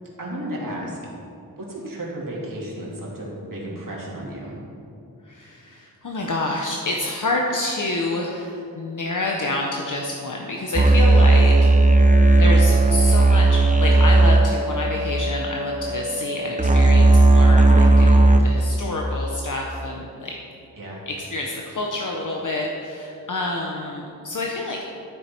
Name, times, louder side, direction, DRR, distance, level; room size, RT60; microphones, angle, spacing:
voice 1, 0.2-1.0 1.6-4.6 20.8-21.0, right 1 dB, 60° right, -5 dB, 2.8 m, -33 dB
voice 2, 5.2-11.7 12.4-20.4 21.1-24.8, left 2 dB, 55° left, -1 dB, 1.0 m, -28 dB
sound 1, 10.7-18.4, right 2 dB, 20° right, 0.8 m, -15 dB
12.5 x 7.4 x 4.5 m, 2.6 s
wide cardioid pair, 95°, 37 cm